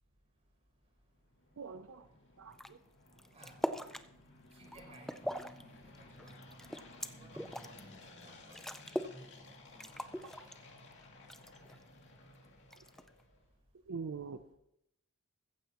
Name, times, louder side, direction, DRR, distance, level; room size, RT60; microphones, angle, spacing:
sound 1, 1.1-13.4, left 2 dB, 55° left, 2.5 m, -57 dB
voice 1, 1.6-2.1 2.4-2.8 10.2-10.5 13.9-14.4, right 5 dB, 70° right, 10 dB, 0.5 m, -44 dB
sound 2, 2.5-2.7 3.1-4.1 4.5-5.6 5.9-7.8 8.2-8.3 8.5-9.2 9.5-9.6 9.8-10.9 11.3-11.8 12.7-13.2, equal, ahead, 0.4 m, -40 dB
voice 2, 4.5-6.6 7.1-7.8 8.0-8.7 9.0-10.6, right 1 dB, 30° right, 0 dB, 4.5 m, -58 dB
15.0 x 14.5 x 3.0 m, 0.81 s
head